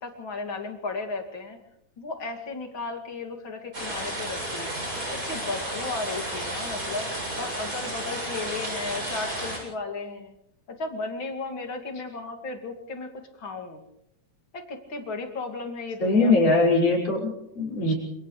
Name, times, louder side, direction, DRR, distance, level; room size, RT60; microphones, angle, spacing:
voice 1, 0.0-1.6 2.0-4.7 5.1-7.1 7.4-10.3 10.7-13.1 13.4-13.8 14.5-16.7, left 3 dB, 40° left, 3 dB, 3.0 m, -35 dB
sound 1, 3.7-9.6, right 1 dB, 25° right, 8.0 m, -32 dB
voice 2, 16.0-17.9, left 2 dB, 70° left, -2 dB, 7.6 m, -21 dB
30.0 x 28.0 x 3.3 m, 0.84 s
omnidirectional pair, 3.8 m